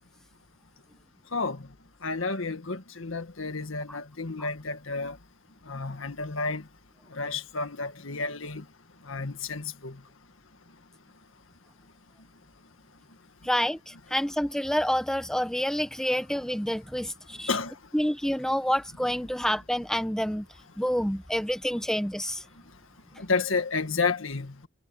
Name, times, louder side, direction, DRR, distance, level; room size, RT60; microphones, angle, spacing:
voice 1, 1.3-1.7 2.0-5.2 5.6-6.7 7.1-8.6 9.0-10.0 17.5-17.8 23.1-24.7, left 4 dB, 80° left, 1.8 m, -31 dB
voice 2, 13.4-17.5 17.9-20.5 20.8-22.4, equal, 5° left, 0.8 m, -28 dB
head